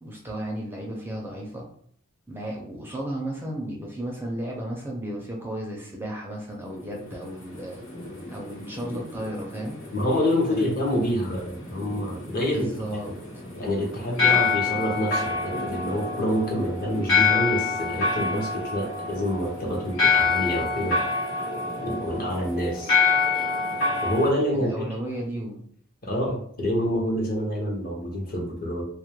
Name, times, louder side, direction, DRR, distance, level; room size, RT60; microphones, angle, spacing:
voice 1, 0.0-1.7 2.3-7.8 8.3-9.8 10.5-10.6 12.2-13.1 24.5-25.7, right 1 dB, 10° right, -1 dB, 0.4 m, -34 dB
sound 1, 6.6-24.3, left 5 dB, 80° left, 1.1 m, -27 dB
voice 2, 9.9-12.7 13.0-13.2 13.6-21.0 21.8-22.9 24.0-24.9 26.0-28.8, equal, 50° left, -1 dB, 0.7 m, -27 dB
2.2 x 2.1 x 2.9 m, 0.63 s
head